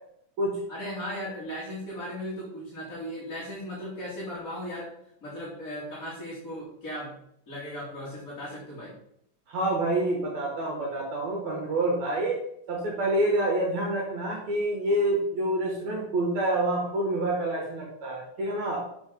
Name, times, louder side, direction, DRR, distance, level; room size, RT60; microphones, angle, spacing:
voice 1, 0.7-4.9 5.2-7.1 7.5-8.9, equal, 25° left, -8 dB, 2.7 m, -37 dB
voice 2, 9.5-12.4 12.7-18.8, right 1 dB, 65° right, -1 dB, 2.8 m, -27 dB
7.3 x 5.8 x 5.3 m, 0.72 s
omnidirectional pair, 3.7 m